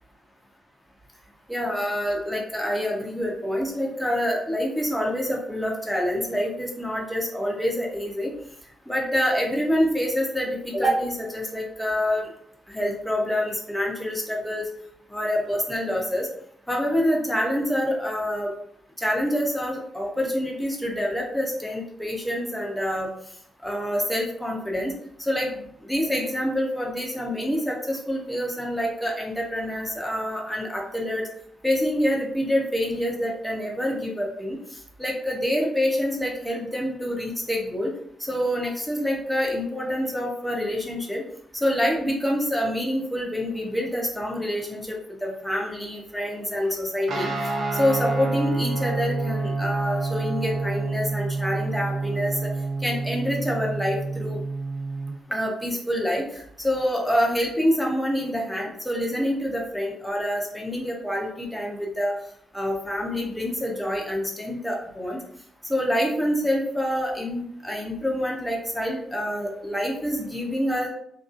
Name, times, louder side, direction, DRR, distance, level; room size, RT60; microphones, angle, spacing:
voice 1, 1.5-8.3 8.9-12.3 12.7-14.7 15.1-16.3 16.7-18.5 19.0-23.1 23.6-24.9 25.2-31.2 31.6-34.6 35.0-37.9 38.2-41.2 41.5-47.3 47.7-52.5 52.8-54.4 55.3-62.1 62.5-65.2 65.7-70.9, equal, 5° left, -1 dB, 0.5 m, -26 dB
Guitar, 47.1-55.1, right 3 dB, 60° right, 0.5 m, -28 dB
2.5 x 2.2 x 2.4 m, 0.69 s
wide cardioid pair, 150°, 0 cm